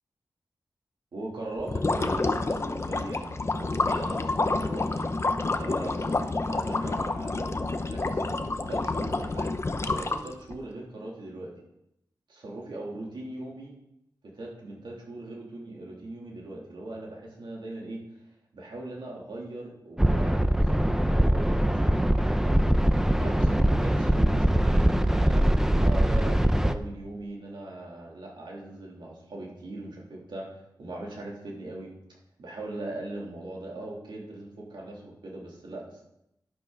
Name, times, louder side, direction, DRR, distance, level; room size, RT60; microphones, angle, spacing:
voice 1, 1.1-5.1 5.5-11.5 12.3-13.7 14.3-18.0 18.5-30.5 30.8-31.9 32.4-35.8, right 2 dB, 90° right, -3 dB, 3.2 m, -40 dB
sound 1, 1.6-10.6, left 3 dB, 35° left, 0.7 m, -28 dB
sound 2, 20.0-26.7, right 1 dB, 5° right, 0.7 m, -22 dB
11.0 x 11.0 x 4.0 m, 0.82 s
wide cardioid pair, 105°, 8 cm